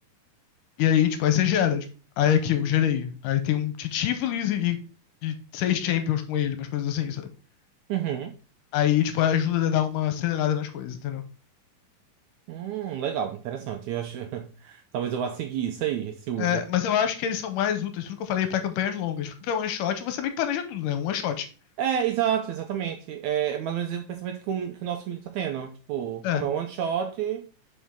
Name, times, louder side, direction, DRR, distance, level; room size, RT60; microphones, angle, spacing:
voice 1, 0.8-1.9 2.2-4.8 5.2-7.2 8.7-11.2 16.4-21.5 26.2-26.4, left 10 dB, 80° left, 2.2 m, -25 dB
voice 2, 7.9-8.3 12.5-16.6 21.8-27.5, right 9 dB, 80° right, 1.8 m, -29 dB
7.2 x 5.3 x 3.6 m
omnidirectional pair, 3.9 m